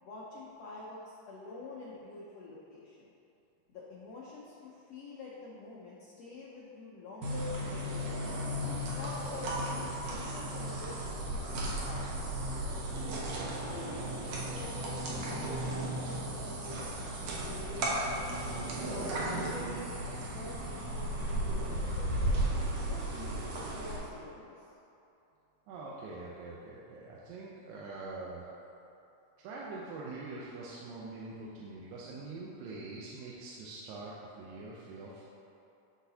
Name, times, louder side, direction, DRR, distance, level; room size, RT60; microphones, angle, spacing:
voice 1, 0.0-3.1 3.7-8.4 9.0-12.3 13.6-17.0 17.4-18.5 18.9-22.4 22.9-24.6, left 3 dB, 80° left, -6 dB, 1.4 m, -47 dB
sound 1, 7.2-24.0, right 1 dB, 65° right, 1.7 m, -35 dB
voice 2, 25.7-28.4 29.4-35.2, right 3 dB, 90° right, -5 dB, 2.4 m, -44 dB
12.0 x 4.0 x 2.8 m, 2.8 s
omnidirectional pair, 3.9 m